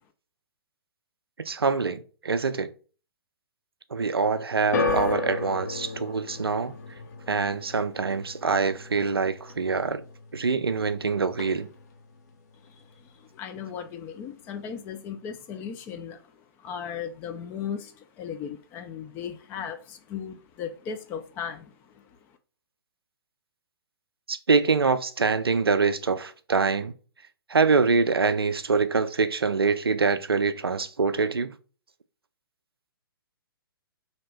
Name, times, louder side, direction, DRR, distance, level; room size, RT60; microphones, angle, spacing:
voice 1, 1.4-2.7 3.9-6.7 7.3-10.0 10.3-11.7 24.3-26.9 27.5-31.5, right 4 dB, 75° right, 0.4 m, -25 dB
sound 1, 4.7-11.0 11.3-11.9 12.7-12.8, left 3 dB, 45° left, 0.7 m, -33 dB
voice 2, 13.3-16.2 16.6-21.7, left 7 dB, 15° left, 0.3 m, -36 dB
2.9 x 2.8 x 4.3 m
figure-of-eight pair, 120°, 13 cm